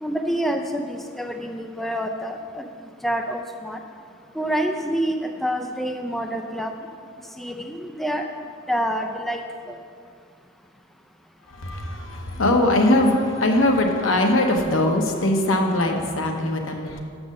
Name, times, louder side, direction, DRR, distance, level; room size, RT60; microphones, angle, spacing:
voice 1, 0.0-2.7 3.0-3.8 4.3-6.7 7.4-8.2 8.7-9.8, equal, ahead, 4 dB, 0.3 m, -27 dB
voice 2, 11.5-17.0, left 1 dB, 80° left, 3 dB, 0.9 m, -21 dB
6.4 x 6.0 x 6.5 m, 2.3 s
head